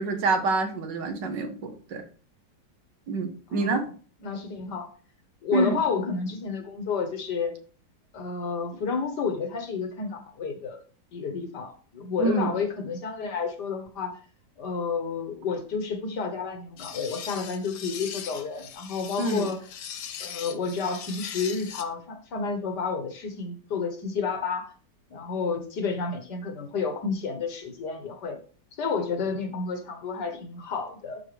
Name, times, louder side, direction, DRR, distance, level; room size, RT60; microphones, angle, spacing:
voice 1, 0.0-2.0 3.1-3.9 5.5-5.8 12.2-12.5 19.2-19.5, right 3 dB, 70° right, 6 dB, 1.9 m, -26 dB
voice 2, 3.5-3.9 4.2-4.9 5.4-7.5 8.1-10.8 11.1-14.2 14.6-19.6 20.2-24.7 25.1-28.4 28.8-31.2, left 5 dB, 65° left, 7 dB, 1.9 m, -30 dB
sound 1, 16.8-21.8, left 8 dB, 85° left, 1.7 m, -40 dB
12.5 x 4.9 x 3.4 m, 0.39 s
omnidirectional pair, 2.0 m